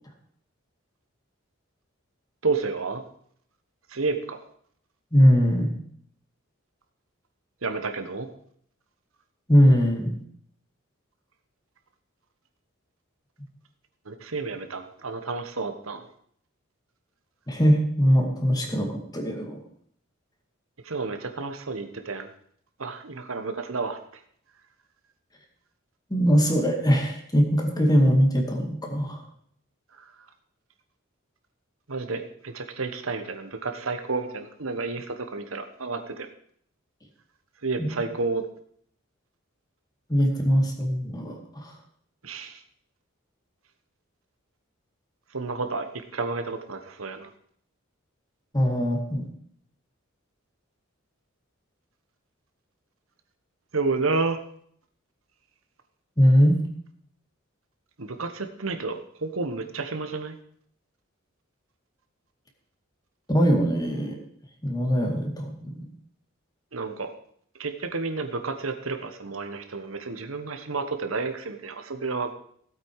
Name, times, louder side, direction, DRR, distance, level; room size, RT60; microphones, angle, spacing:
voice 1, 2.4-3.0 3.9-4.4 7.6-8.3 14.1-16.0 20.8-22.3 22.8-24.0 30.0-30.1 31.9-36.3 37.6-38.4 42.2-42.6 45.3-47.3 53.7-54.4 58.0-60.3 66.7-67.1 67.6-72.3, right 3 dB, 80° right, 7 dB, 1.3 m, -30 dB
voice 2, 5.1-5.7 9.5-10.1 17.5-19.6 26.1-29.2 37.8-37.9 40.1-41.7 48.5-49.3 56.2-56.6 63.3-64.2 64.6-65.9, equal, 20° left, 3 dB, 2.1 m, -21 dB
16.0 x 8.5 x 4.8 m, 0.62 s
head